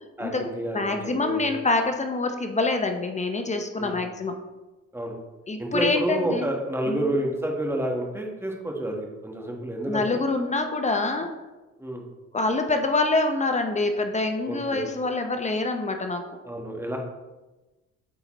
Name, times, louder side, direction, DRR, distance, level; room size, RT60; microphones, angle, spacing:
voice 1, 0.2-1.4 3.8-4.0 4.9-5.2 5.6-10.2 11.8-12.0 14.5-14.8 16.4-17.0, right 1 dB, 10° right, 0 dB, 1.2 m, -29 dB
voice 2, 0.7-4.4 5.5-6.5 6.9-7.1 9.9-11.3 12.3-16.2, left 3 dB, 25° left, 5 dB, 0.6 m, -26 dB
8.3 x 4.0 x 3.0 m, 1.1 s
cardioid pair, 90°, 30 cm